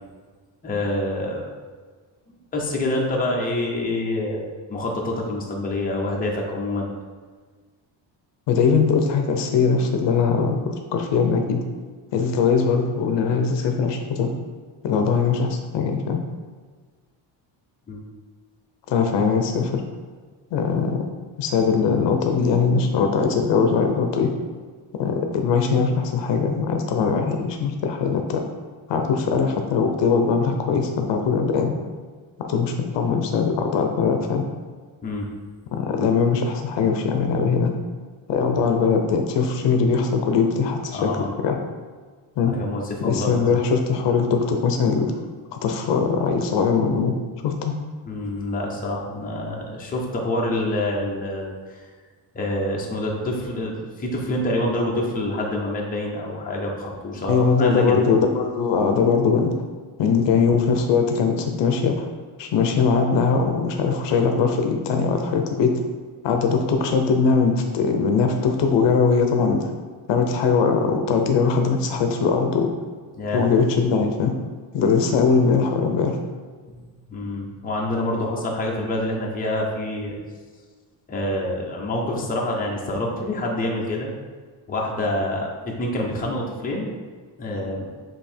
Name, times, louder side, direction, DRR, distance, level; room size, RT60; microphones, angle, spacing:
voice 1, 0.6-1.5 2.3-6.9 17.9-18.0 35.0-35.3 40.9-41.3 42.5-43.6 48.1-51.8 52.3-58.0 60.3-60.4 73.2-73.5 76.7-76.8 77.1-80.2 81.1-84.1 84.7-86.9 87.4-87.8, left 1 dB, 20° left, -2 dB, 0.7 m, -27 dB
voice 2, 8.5-11.6 12.1-14.3 14.8-16.2 18.9-19.8 20.5-21.1 21.4-24.3 25.0-28.4 28.9-31.7 32.5-34.4 35.7-37.7 38.3-41.6 42.4-42.6 43.0-45.1 45.5-47.1 47.4-47.7 57.2-59.6 60.0-62.1 62.4-65.8 66.2-69.7 70.1-72.7 73.3-74.4 74.7-76.2, left 5 dB, 65° left, 4 dB, 0.7 m, -21 dB
7.6 x 2.8 x 4.3 m, 1.5 s
cardioid pair, 175°, 46 cm